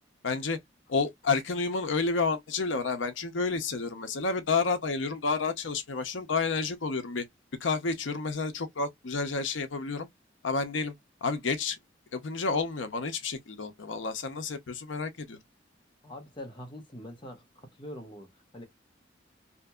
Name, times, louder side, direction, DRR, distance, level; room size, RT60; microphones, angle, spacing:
voice 1, 0.2-0.6 0.9-7.2 7.6-10.1 10.4-10.9 11.2-11.8 12.1-15.4, left 4 dB, 75° left, 0.7 m, -30 dB
voice 2, 16.0-18.7, left 1 dB, 25° left, 0.9 m, -44 dB
2.8 x 2.6 x 2.2 m
head